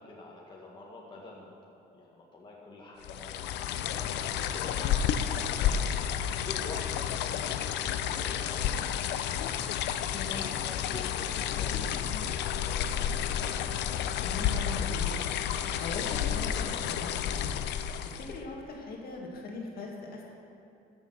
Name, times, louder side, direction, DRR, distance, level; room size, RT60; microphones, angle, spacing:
voice 1, 0.0-1.5 1.9-3.6 3.9-9.5 10.3-13.6, left 2 dB, 25° left, -3 dB, 1.7 m, -46 dB
sound 1, 3.0-18.4, left 9 dB, 70° left, 0.6 m, -31 dB
voice 2, 14.2-15.2 15.8-17.6 18.3-20.3, left 3 dB, 55° left, -1 dB, 2.2 m, -40 dB
13.5 x 7.2 x 5.9 m, 2.7 s
cardioid pair, 120°, 18 cm